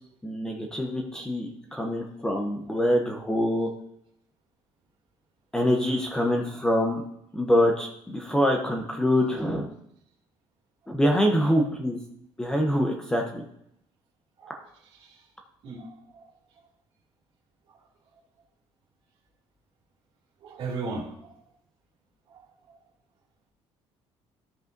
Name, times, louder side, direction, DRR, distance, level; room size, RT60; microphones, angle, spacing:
voice 1, 0.2-3.7 5.5-7.0 7.3-9.7 10.9-12.0 12.4-13.4, equal, 5° left, 1 dB, 0.7 m, -25 dB
voice 2, 15.6-16.3 17.7-17.8 20.4-21.4 22.3-22.8, right 3 dB, 60° right, -1 dB, 2.2 m, -38 dB
13.0 x 5.4 x 2.6 m, 0.74 s
cardioid pair, 175°, 11 cm